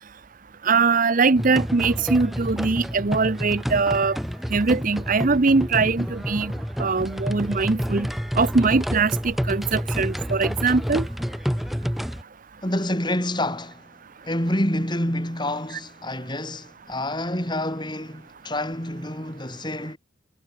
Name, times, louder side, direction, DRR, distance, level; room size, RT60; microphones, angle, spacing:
voice 1, 0.6-4.2 4.5-6.5 6.8-8.1 8.4-11.1, right 4 dB, 40° right, 0.7 m, -21 dB
sound 1, 1.4-12.2, equal, ahead, 2.9 m, -29 dB
voice 2, 12.6-13.9 14.2-20.0, left 1 dB, 20° left, 7.9 m, -28 dB
head